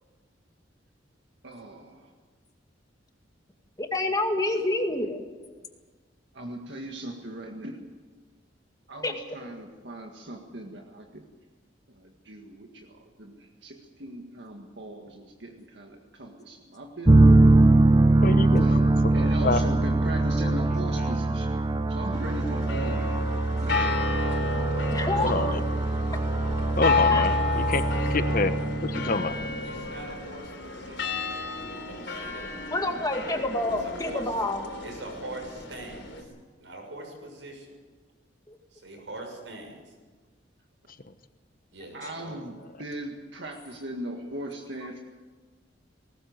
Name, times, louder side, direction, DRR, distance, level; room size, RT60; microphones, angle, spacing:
voice 1, 1.4-2.1 6.3-7.8 8.9-11.2 11.9-17.7 18.3-21.6 21.9-23.2 23.6-24.0 25.1-25.6 41.9-45.1, right 1 dB, 65° right, 2 dB, 1.9 m, -39 dB
voice 2, 3.8-5.2 9.0-9.1 24.9-25.6 27.1-27.2 32.7-34.7 38.5-38.6, left 2 dB, 20° left, 4 dB, 2.1 m, -28 dB
sound 1, 17.1-29.7, right 2 dB, 25° right, 0.8 m, -22 dB
voice 3, 18.2-19.6 21.0-21.1 25.2-25.6 26.8-28.5 28.8-29.4, left 3 dB, 50° left, 10 dB, 1.1 m, -28 dB
sound 2, 22.1-36.2, left 4 dB, 70° left, 3.8 m, -32 dB
voice 4, 29.6-32.9 33.8-34.3 34.8-36.3 36.6-37.7 38.7-39.9 41.7-42.4, right 2 dB, 85° right, 2 dB, 6.9 m, -43 dB
19.5 x 18.5 x 8.0 m, 1.4 s
head